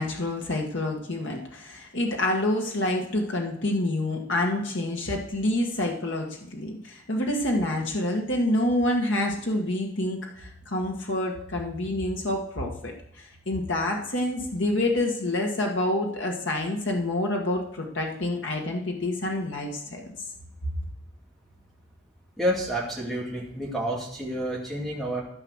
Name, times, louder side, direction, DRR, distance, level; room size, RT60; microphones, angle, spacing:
voice 1, 0.0-20.1, left 1 dB, 85° left, 0 dB, 1.8 m, -27 dB
voice 2, 22.4-25.2, right 1 dB, ahead, -3 dB, 2.4 m, -29 dB
13.0 x 5.9 x 6.4 m, 0.73 s
head